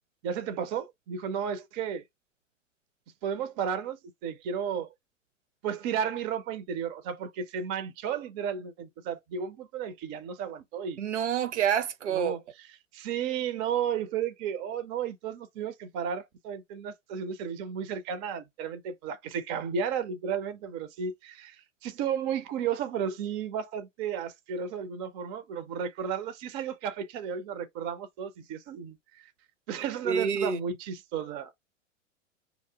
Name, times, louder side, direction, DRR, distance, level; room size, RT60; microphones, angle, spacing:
voice 1, 0.2-2.0 3.2-4.9 5.6-11.0 12.1-12.4 12.9-29.3 29.7-31.5, right 7 dB, 20° right, 0.4 m, -33 dB
voice 2, 11.0-12.4 30.0-30.6, right 8 dB, 65° right, 0.7 m, -27 dB
4.0 x 2.9 x 3.4 m
figure-of-eight pair, 100°, 38 cm